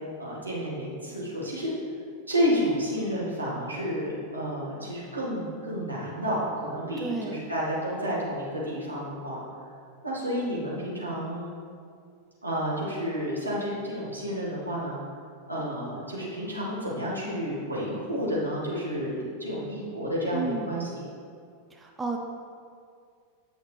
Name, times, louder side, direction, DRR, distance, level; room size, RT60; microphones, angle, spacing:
voice 1, 0.2-1.7 2.3-9.4 10.0-11.5 12.4-15.0 15.5-21.0, equal, 80° right, -6 dB, 2.1 m, -30 dB
voice 2, 7.0-7.5 20.3-20.8 21.7-22.2, right 3 dB, 15° right, 1 dB, 0.7 m, -32 dB
8.6 x 6.4 x 3.4 m, 2.3 s
figure-of-eight pair, 90°, 0 cm